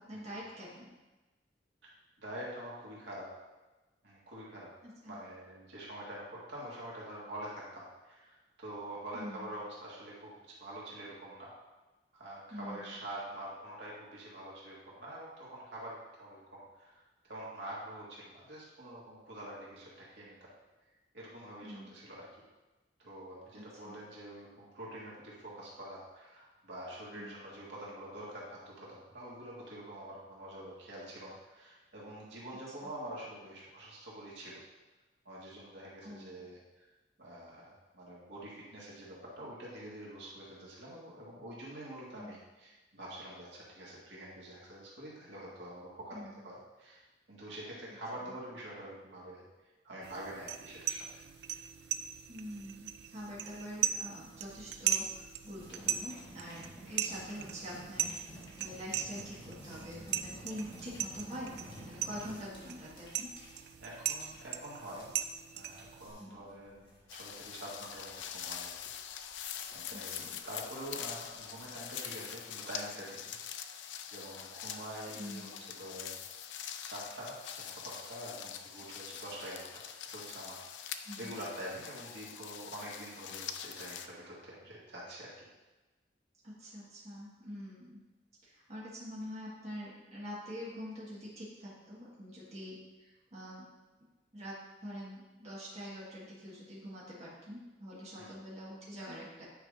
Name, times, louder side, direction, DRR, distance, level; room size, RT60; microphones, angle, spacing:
voice 1, 0.1-0.9 4.8-5.2 9.1-9.5 12.5-13.0 21.6-21.9 23.5-24.0 27.1-27.3 32.8-32.9 36.0-36.3 42.2-42.3 46.1-46.3 48.2-48.3 52.3-61.5 61.8-63.3 66.2-66.4 69.9-70.4 75.1-75.5 81.0-81.3 86.4-88.0 88.4-93.7 94.3-99.4, equal, 40° right, -7 dB, 1.6 m, -45 dB
voice 2, 2.2-3.3 4.0-4.7 5.1-10.3 10.6-11.5 12.1-20.5 21.1-22.3 23.0-34.6 35.3-36.9 37.2-47.0 47.3-49.4 49.8-51.2 63.8-65.1 65.5-68.7 69.7-73.4 73.6-73.8 74.1-75.5 75.8-76.3 76.8-79.8 80.1-85.4 98.2-98.3, right 1 dB, 80° right, -6 dB, 1.9 m, -46 dB
sound 1, 50.0-66.1, right 9 dB, 60° right, 0.4 m, -39 dB
sound 2, 55.6-71.9, equal, 30° left, 1.5 m, -52 dB
sound 3, 67.1-84.1, left 9 dB, 85° left, 0.4 m, -44 dB
9.1 x 5.0 x 2.6 m, 1.1 s
head